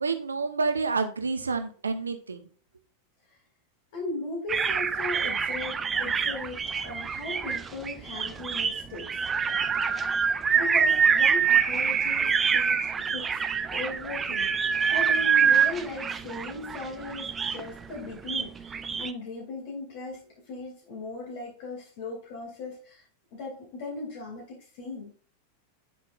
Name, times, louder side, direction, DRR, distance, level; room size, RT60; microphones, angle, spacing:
voice 1, 0.0-2.5, right 4 dB, 75° right, 9 dB, 0.9 m, -29 dB
voice 2, 3.9-9.2 10.5-13.4 13.7-20.2 20.5-23.0 23.3-25.1, left 2 dB, 50° left, -1 dB, 2.4 m, -38 dB
sound 1, 4.5-19.1, right 6 dB, 20° right, 0.5 m, -26 dB
9.5 x 5.7 x 2.5 m, 0.42 s
figure-of-eight pair, 90°, 0 cm